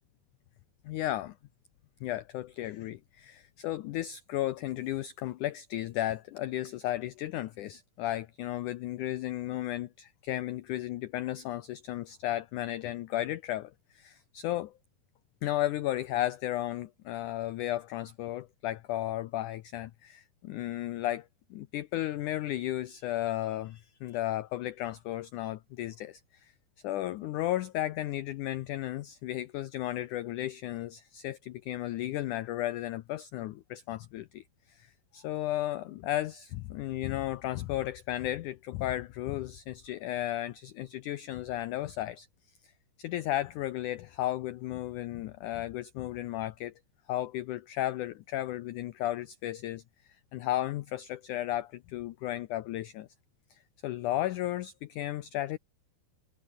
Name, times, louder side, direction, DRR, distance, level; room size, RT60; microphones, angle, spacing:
voice 1, 0.8-1.4 2.0-14.7 15.4-26.5 26.8-42.3 42.6-42.7 43.0-46.7 47.1-49.8 50.3-53.1 53.5-55.6, left 14 dB, 85° left, 1.8 m, -34 dB
omnidirectional pair, 4.6 m